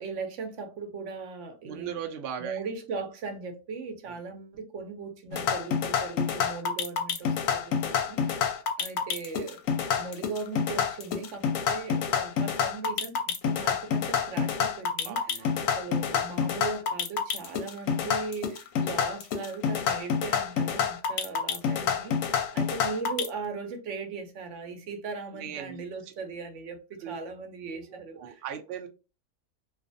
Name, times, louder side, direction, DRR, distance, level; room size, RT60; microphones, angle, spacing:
voice 1, 0.0-2.1 2.4-8.4 8.8-9.6 10.0-28.4, right 4 dB, 65° right, 0.8 m, -38 dB
voice 2, 1.6-2.6 4.1-4.2 15.0-15.7 25.3-25.8 27.0-27.2 27.9-28.9, right 8 dB, 90° right, 0.5 m, -38 dB
sound 1, 5.3-23.3, left 7 dB, 70° left, 0.9 m, -28 dB
2.4 x 2.4 x 2.5 m
omnidirectional pair, 1.6 m